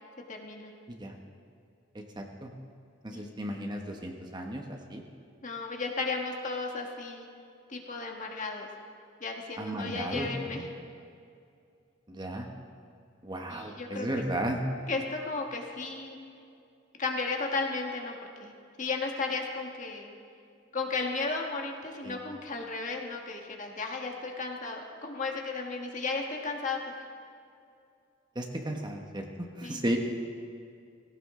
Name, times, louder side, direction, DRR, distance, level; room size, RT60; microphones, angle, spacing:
voice 1, 0.3-0.7 3.1-3.2 5.4-7.3 7.7-8.7 9.2-10.6 13.5-14.1 14.9-16.2 17.0-18.1 18.4-18.5 18.8-20.1 20.7-26.8 29.6-29.8, left 3 dB, 40° left, 1 dB, 1.6 m, -34 dB
voice 2, 1.9-2.5 3.0-5.0 9.6-10.6 12.1-12.5 13.2-14.6 22.0-22.2 28.3-30.0, right 1 dB, 25° right, 2 dB, 1.2 m, -34 dB
17.5 x 17.0 x 3.8 m, 2.4 s
head